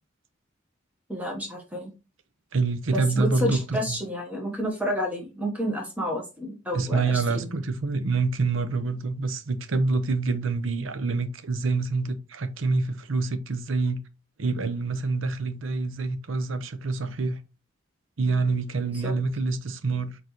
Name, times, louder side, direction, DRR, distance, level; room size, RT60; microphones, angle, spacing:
voice 1, 1.1-1.9 2.9-7.5 19.0-19.1, equal, 10° right, 1.1 m, -30 dB
voice 2, 2.5-4.0 6.7-14.0 14.4-17.4 18.2-20.2, right 3 dB, 75° right, 0.7 m, -26 dB
4.4 x 4.0 x 3.0 m
head